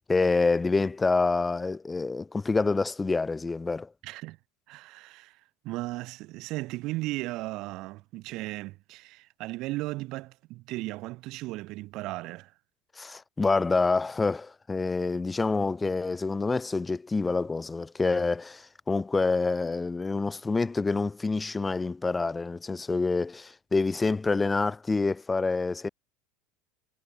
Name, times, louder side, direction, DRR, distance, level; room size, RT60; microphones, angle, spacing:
voice 1, 0.1-3.9 13.0-25.9, left 3 dB, 15° left, 1.5 m, -27 dB
voice 2, 4.0-4.4 4.7-12.5, right 20 dB, 55° right, 0.9 m, -36 dB
hypercardioid pair, 100°, 0 cm